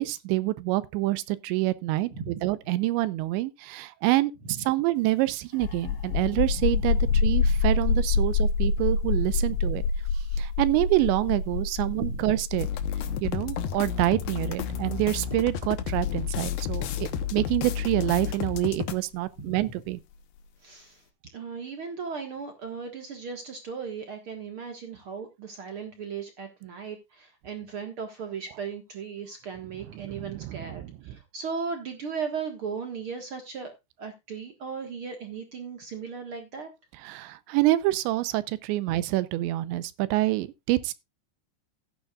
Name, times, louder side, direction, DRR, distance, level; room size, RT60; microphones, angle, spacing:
voice 1, 0.0-4.3 4.7-9.8 10.4-12.7 13.2-20.0 30.0-30.9 37.0-40.9, right 17 dB, 90° right, 3.0 m, -27 dB
voice 2, 2.1-2.4 4.4-4.6 7.0-7.2 9.5-9.7 12.0-12.3 14.7-14.8 16.9-17.2 19.4-19.7 20.6-21.0 21.3-33.7 34.0-36.7, right 5 dB, 70° right, 1.3 m, -37 dB
sound 1, 5.5-18.9, left 5 dB, 85° left, 3.8 m, -27 dB
sound 2, 12.6-18.9, left 9 dB, 70° left, 2.6 m, -31 dB
15.0 x 9.8 x 2.4 m
omnidirectional pair, 5.1 m